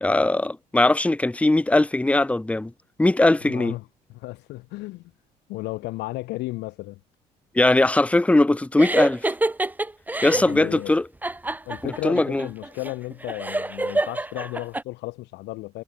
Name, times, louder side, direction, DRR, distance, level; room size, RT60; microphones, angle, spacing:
voice 1, 0.0-2.7 3.0-3.7 7.5-9.3 10.2-11.1 11.8-12.5, left 2 dB, 10° left, 1.2 m, -20 dB
voice 2, 3.4-5.1 5.5-7.0 10.3-10.9 11.6-15.8, left 20 dB, 90° left, 6.7 m, -34 dB
sound 1, 8.8-10.5 11.2-14.8, right 2 dB, 10° right, 3.4 m, -26 dB
cardioid pair, 110°, 17 cm